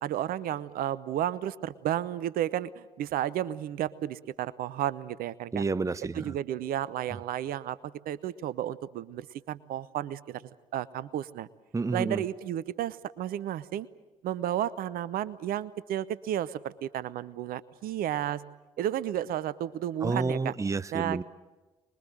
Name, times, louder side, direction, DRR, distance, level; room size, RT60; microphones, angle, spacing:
voice 1, 0.0-5.6 6.1-7.8 8.1-10.4 10.7-11.5 11.9-13.9 14.2-18.4 18.8-20.5 20.9-21.2, right 11 dB, 60° right, 18 dB, 0.8 m, -32 dB
voice 2, 5.5-6.3 11.7-12.2 20.0-21.2, right 3 dB, 20° right, 16 dB, 0.8 m, -30 dB
25.0 x 22.0 x 7.6 m, 1.2 s
figure-of-eight pair, 45°, 17 cm